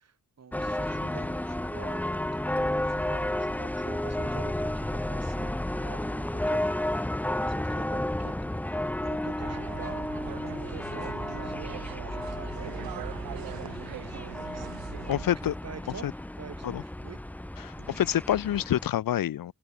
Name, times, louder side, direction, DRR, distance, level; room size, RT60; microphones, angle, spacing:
voice 1, 0.0-2.0 2.3-10.1 10.5-16.1 16.4-17.2 17.8-18.0, right 6 dB, 45° right, 2.8 m, -47 dB
sound 1, 0.5-18.9, left 1 dB, 5° left, 0.7 m, -32 dB
sound 2, 9.4-15.3, right 14 dB, 80° right, 0.5 m, -42 dB
voice 2, 15.1-15.5 16.0-16.1 16.6-16.8 17.6-19.5, left 11 dB, 75° left, 0.7 m, -27 dB
open air
wide cardioid pair, 155°, 35 cm